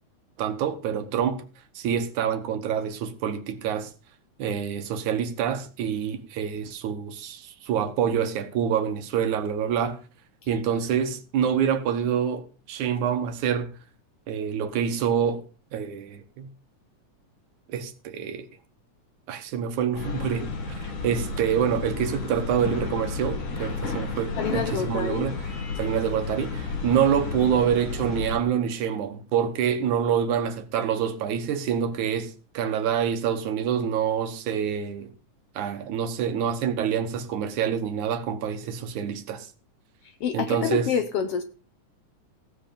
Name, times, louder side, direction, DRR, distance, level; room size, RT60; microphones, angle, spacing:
voice 1, 0.4-1.4 1.8-3.9 4.4-10.0 10.5-13.7 14.3-15.4 15.7-16.5 17.7-18.5 19.3-25.5 25.8-35.1 35.6-39.5 40.3-40.9, right 8 dB, 80° right, 2.6 m, -26 dB
sound 1, 19.9-28.4, left 4 dB, 90° left, 4.0 m, -32 dB
voice 2, 24.4-25.3 40.2-41.4, left 7 dB, 70° left, 1.5 m, -27 dB
16.0 x 7.6 x 5.2 m
omnidirectional pair, 3.4 m